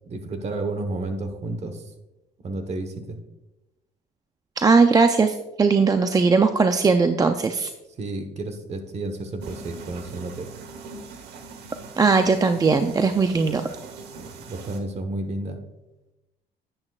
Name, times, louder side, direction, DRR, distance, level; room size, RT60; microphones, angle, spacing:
voice 1, 0.0-1.8 2.4-3.2 8.0-10.5 14.1-15.6, right 2 dB, 40° right, 7 dB, 1.2 m, -31 dB
voice 2, 4.6-7.7 12.0-13.7, right 4 dB, 20° right, 7 dB, 0.4 m, -19 dB
sound 1, 9.4-14.8, right 4 dB, 80° right, 1.1 m, -41 dB
10.5 x 8.8 x 2.4 m, 1.0 s
cardioid pair, 110°, 17 cm